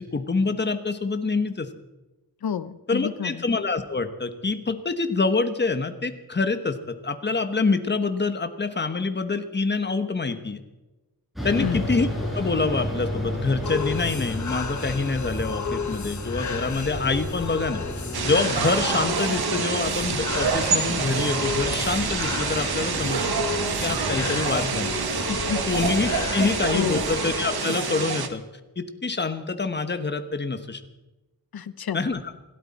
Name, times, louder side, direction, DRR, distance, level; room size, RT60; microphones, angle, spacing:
voice 1, 0.0-1.7 2.9-10.6 11.4-17.8 18.2-23.2 23.5-25.0 25.7-28.4 28.8-30.8 31.9-32.2, left 3 dB, 30° left, 9 dB, 1.2 m, -26 dB
voice 2, 2.4-3.4 11.6-11.9 25.3-25.6 26.3-27.0 31.5-32.0, left 8 dB, 80° left, 14 dB, 0.9 m, -30 dB
sound 1, 11.4-27.4, equal, ahead, 5.9 m, -33 dB
sound 2, 13.6-28.3, left 6 dB, 50° left, 1.2 m, -34 dB
sound 3, 18.1-28.3, right 6 dB, 90° right, 1.5 m, -27 dB
27.0 x 12.5 x 4.2 m, 1.1 s
wide cardioid pair, 180°, 37 cm